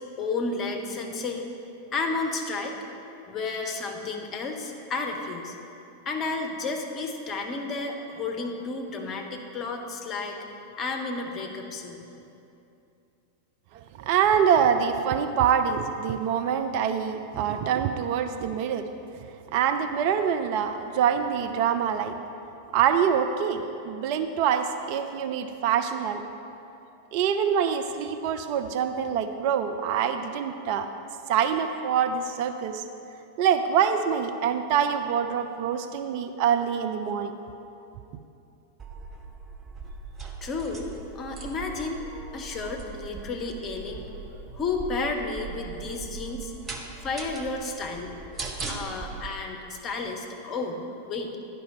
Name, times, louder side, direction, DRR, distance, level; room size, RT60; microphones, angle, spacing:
voice 1, 0.2-1.5 1.9-2.8 3.3-5.6 6.0-10.4 10.8-12.0 40.4-42.0 42.3-51.4, left 3 dB, 30° left, 3 dB, 1.0 m, -32 dB
voice 2, 14.0-18.9 19.5-22.2 22.7-26.2 27.1-30.9 31.3-32.8 33.4-37.4, right 8 dB, 45° right, 7 dB, 0.4 m, -25 dB
sound 1, 38.8-49.3, right 4 dB, 20° right, 0.9 m, -40 dB
10.5 x 5.3 x 5.5 m, 2.8 s
figure-of-eight pair, 90°, 0 cm